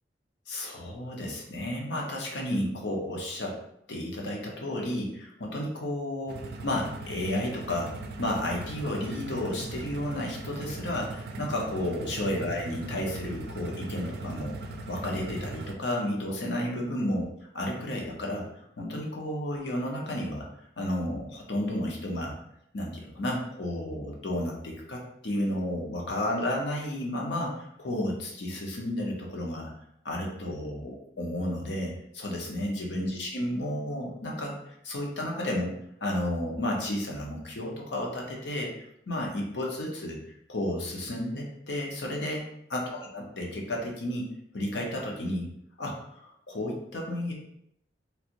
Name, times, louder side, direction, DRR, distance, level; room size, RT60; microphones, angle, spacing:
voice 1, 0.5-3.6 3.9-7.9 8.2-14.6 14.9-17.2 17.5-18.4 18.8-20.4 20.8-22.3 22.7-29.7 30.0-35.7 36.0-40.2 40.5-45.5 45.8-47.3, left 1 dB, 85° left, -1 dB, 0.8 m, -32 dB
sound 1, 6.3-15.7, right 3 dB, 60° right, 0.4 m, -40 dB
3.2 x 2.5 x 2.9 m, 0.76 s
head